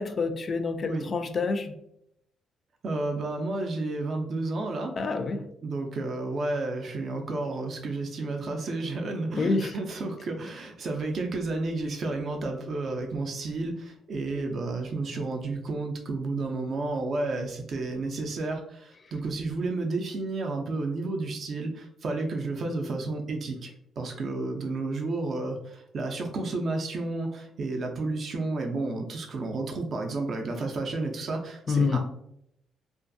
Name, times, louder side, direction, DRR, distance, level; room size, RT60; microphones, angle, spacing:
voice 1, 0.0-1.7 5.0-5.4 9.4-9.7 31.7-32.0, left 4 dB, 45° left, 8 dB, 0.3 m, -27 dB
voice 2, 2.8-5.0 5.6-23.7 24.0-32.0, right 2 dB, 55° right, 2 dB, 0.4 m, -31 dB
2.5 x 2.3 x 2.5 m, 0.75 s
cardioid pair, 90°, 0 cm